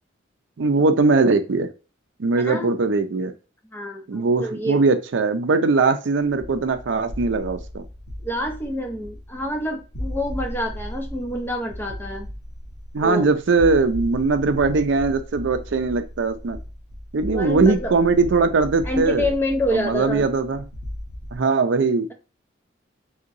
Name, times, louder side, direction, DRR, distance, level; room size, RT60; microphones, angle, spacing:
voice 1, 0.6-1.7 2.2-3.3 4.1-7.8 12.9-16.6 17.1-19.3 19.7-20.6 21.3-22.1, right 4 dB, 70° right, 8 dB, 0.5 m, -20 dB
voice 2, 2.4-2.8 3.7-4.8 8.2-12.3 13.0-13.3 17.3-17.9 18.8-20.3, left 1 dB, 10° left, 3 dB, 0.6 m, -27 dB
sound 1, 6.3-21.4, equal, 75° left, 1.0 m, -36 dB
3.6 x 2.9 x 2.5 m, 0.32 s
head